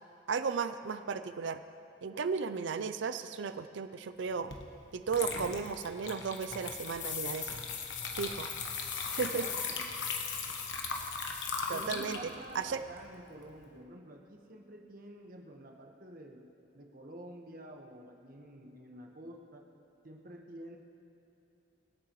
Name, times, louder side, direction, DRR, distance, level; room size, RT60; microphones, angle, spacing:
voice 1, 0.3-1.6 2.0-4.5 4.9-7.6 8.1-8.5 9.1-9.5 11.7-12.2 12.5-12.8, right 5 dB, 75° right, 10 dB, 0.5 m, -35 dB
Water / Liquid, 4.5-4.7 5.1-13.6, left 4 dB, 80° left, 1.2 m, -40 dB
sound 1, 6.3-11.9, left 8 dB, 45° left, 1.0 m, -40 dB
voice 2, 9.4-9.8 11.7-16.4 16.7-19.7 20.0-20.8, right 1 dB, 50° right, 1 dB, 1.3 m, -49 dB
23.5 x 8.6 x 3.1 m, 2.9 s
head